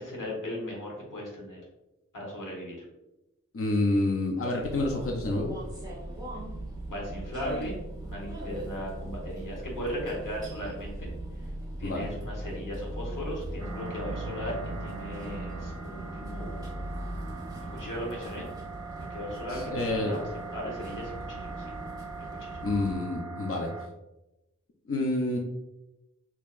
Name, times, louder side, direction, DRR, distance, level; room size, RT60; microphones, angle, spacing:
voice 1, 0.0-1.6 2.1-2.8 6.9-7.8 8.0-11.1 11.8-16.8 17.7-18.5 19.0-21.7 22.3-22.6, equal, 80° left, -2 dB, 1.2 m, -37 dB
voice 2, 3.5-5.5 11.8-12.1 19.5-20.1 22.6-23.7 24.9-25.4, left 2 dB, 45° left, 0 dB, 0.6 m, -28 dB
sound 1, 4.6-22.9, right 1 dB, 10° right, 1.2 m, -39 dB
sound 2, 13.6-23.9, right 4 dB, 50° right, 0.5 m, -42 dB
4.4 x 2.9 x 2.4 m, 0.96 s
wide cardioid pair, 45°, 31 cm